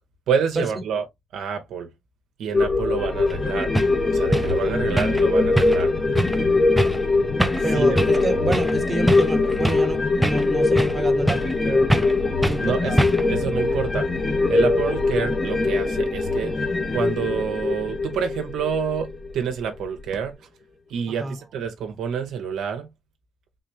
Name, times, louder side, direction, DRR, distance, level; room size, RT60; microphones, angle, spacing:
voice 1, 0.3-1.0 1.3-1.9 2.4-3.7 4.1-5.9 7.7-8.0 12.6-13.0 13.3-14.1 14.5-16.5 16.9-20.4 20.9-22.9, right 7 dB, 80° right, 0.9 m, -27 dB
sound 1, 2.5-20.3, left 2 dB, 50° left, 0.9 m, -37 dB
sound 2, 2.5-19.3 19.7-19.8, left 3 dB, 25° left, 0.9 m, -22 dB
sound 3, 3.3-3.4 3.7-3.9 4.3-4.5 5.0-5.2 5.6-5.9 6.1-6.4 6.8-7.0 7.4-7.7 8.0-8.2 8.5-8.8 9.1-9.9 10.2-11.0 11.3-11.6 11.9-12.2 12.4-12.6 13.0-13.4, right 1 dB, 5° right, 0.5 m, -23 dB
voice 2, 7.6-11.9 12.5-13.0 21.1-21.4, right 1 dB, 20° right, 1.1 m, -28 dB
3.7 x 3.4 x 2.7 m
cardioid pair, 90°, 0 cm